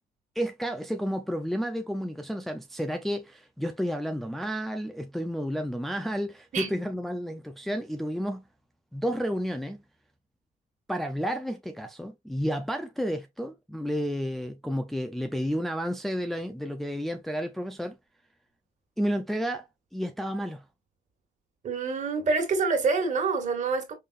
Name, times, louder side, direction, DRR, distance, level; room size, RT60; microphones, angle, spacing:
voice 1, 0.4-8.4 8.9-9.8 10.9-18.0 19.0-19.7 19.9-20.6, equal, ahead, 0.5 m, -31 dB
voice 2, 21.6-23.9, right 4 dB, 45° right, 2.1 m, -26 dB
5.5 x 3.6 x 2.5 m
cardioid pair, 110°, 17 cm